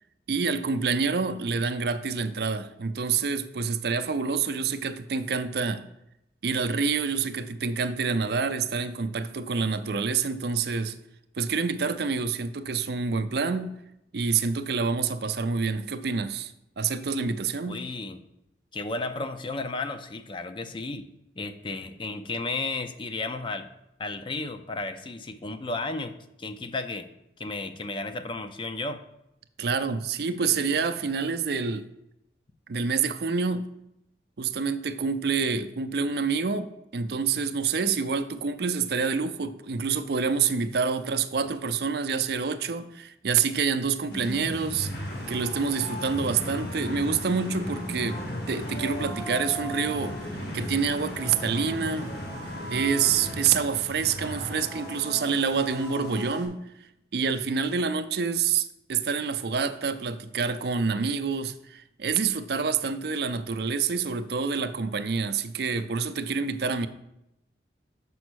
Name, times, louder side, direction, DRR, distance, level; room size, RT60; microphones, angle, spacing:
voice 1, 0.3-5.9 6.4-11.0 11.4-13.8 14.1-17.8 29.6-31.9 32.7-33.7 34.4-44.9 45.3-48.2 48.5-52.1 52.7-56.6 57.1-66.9, right 5 dB, 60° right, 11 dB, 0.5 m, -27 dB
voice 2, 17.7-18.3 18.7-21.1 21.4-23.7 24.0-26.1 26.4-27.1 27.4-29.0, left 3 dB, 30° left, 8 dB, 0.5 m, -33 dB
sound 1, 44.1-56.5, equal, 65° left, 2.2 m, -35 dB
6.9 x 5.2 x 6.2 m, 0.84 s
head